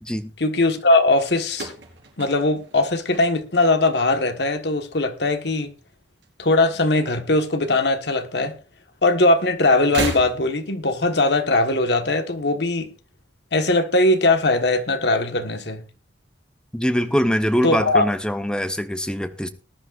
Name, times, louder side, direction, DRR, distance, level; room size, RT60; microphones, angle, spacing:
voice 1, 0.4-1.7 2.2-5.7 6.4-8.5 9.0-12.9 13.5-15.8 17.6-18.1, left 2 dB, 65° left, 1.4 m, -20 dB
sound 1, 1.5-3.8 4.1-4.7 5.8-6.8 7.1-7.2 8.3-8.4 9.8-10.8, right 3 dB, 75° right, 4.2 m, -33 dB
voice 2, 16.7-19.5, equal, 5° left, 0.9 m, -23 dB
20.0 x 11.0 x 2.5 m
head